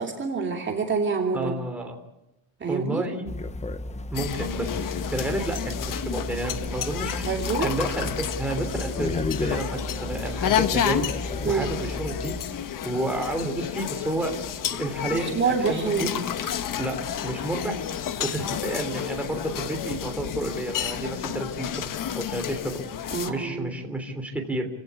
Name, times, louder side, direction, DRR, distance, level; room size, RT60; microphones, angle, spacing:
voice 1, 0.0-1.5 2.6-3.0 7.3-7.7 11.4-11.7 15.1-16.1 16.4-16.5 23.1-23.7, right 5 dB, 25° right, 2 dB, 2.7 m, -26 dB
voice 2, 1.3-2.0 2.7-3.3 4.1-7.2 7.6-11.1 11.5-12.4 12.8-14.4 14.7-16.1 16.8-17.8 18.2-22.8 23.3-24.7, right 1 dB, 5° right, 2 dB, 3.3 m, -31 dB
sound 1, 3.3-12.4, left 2 dB, 15° left, 0.8 m, -33 dB
sound 2, 4.1-23.3, left 9 dB, 50° left, 1.3 m, -31 dB
28.5 x 17.0 x 8.4 m, 0.88 s
cardioid pair, 180°, 41 cm